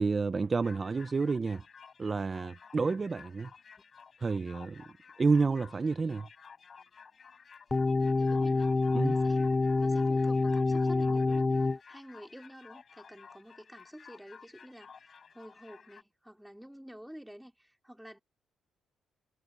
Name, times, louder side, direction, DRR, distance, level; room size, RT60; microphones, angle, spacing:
voice 1, 0.0-1.6 2.0-3.5 4.2-4.8 5.2-6.3 8.9-9.2, right 4 dB, 30° right, 0.6 m, -29 dB
sound 1, 0.6-16.0, left 6 dB, 45° left, 5.7 m, -54 dB
sound 2, 7.7-11.8, left 3 dB, 25° left, 0.4 m, -27 dB
voice 2, 8.1-18.2, equal, 5° right, 4.7 m, -50 dB
cardioid pair, 90°, 0 cm